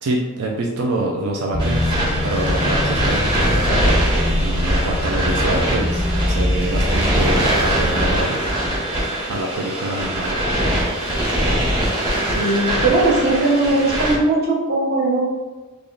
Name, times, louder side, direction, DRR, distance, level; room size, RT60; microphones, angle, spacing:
voice 1, 0.0-1.9 2.2-4.0 4.4-8.5 9.3-10.4, right 2 dB, 80° right, -1 dB, 0.5 m, -25 dB
sound 1, 1.5-8.2, left 1 dB, 10° left, 0.4 m, -22 dB
sound 2, 1.6-14.2, right 1 dB, 20° right, 0.9 m, -22 dB
voice 2, 12.3-15.2, right 2 dB, 45° right, -3 dB, 0.9 m, -19 dB
3.4 x 2.5 x 3.7 m, 1.2 s
head